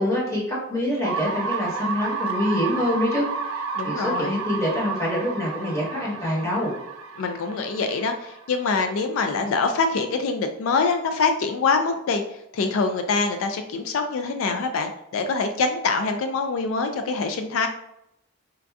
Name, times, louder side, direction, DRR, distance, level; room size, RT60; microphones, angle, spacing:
voice 1, 0.0-3.2 3.5-6.7, left 1 dB, 15° left, -5 dB, 1.1 m, -25 dB
sound 1, 1.0-8.9, right 4 dB, 75° right, 0.4 m, -31 dB
voice 2, 3.7-4.4 7.2-12.2 12.5-17.7, left 4 dB, 80° left, 6 dB, 0.3 m, -24 dB
4.4 x 2.5 x 2.3 m, 0.81 s
head